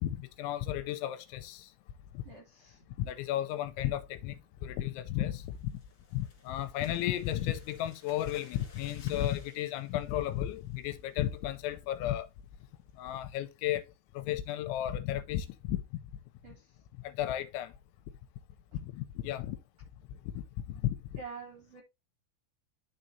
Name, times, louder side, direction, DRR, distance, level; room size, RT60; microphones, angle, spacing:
voice 1, 0.0-1.7 2.1-2.2 3.0-5.7 6.1-12.3 13.0-13.9 14.1-15.8 17.0-17.7 18.8-19.6 20.3-21.0, left 12 dB, 85° left, 2.8 m, -34 dB
voice 2, 2.2-2.8 16.4-16.8 21.2-21.8, right 5 dB, 65° right, 1.5 m, -47 dB
sound 1, 5.4-11.1 11.5-11.8 12.1-12.2 12.6-12.9, left 4 dB, 30° left, 2.6 m, -58 dB
12.0 x 4.4 x 2.6 m
omnidirectional pair, 5.6 m